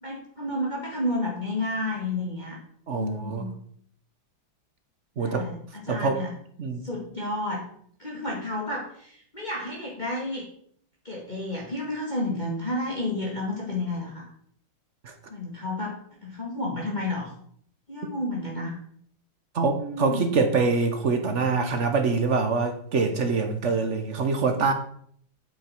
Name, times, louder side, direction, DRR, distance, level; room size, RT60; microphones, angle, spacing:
voice 1, 0.0-2.6 2.9-3.5 5.2-6.3 6.8-7.6 8.0-10.4 11.0-14.3 15.3-17.3 17.9-18.8 19.8-20.4, left 1 dB, 25° left, 2.2 m, -31 dB
voice 2, 2.9-3.5 5.2-5.5 5.9-6.2 6.6-6.9 15.0-15.1 19.5-24.7, right 4 dB, 45° right, 1.0 m, -25 dB
8.9 x 8.3 x 4.6 m
omnidirectional pair, 2.2 m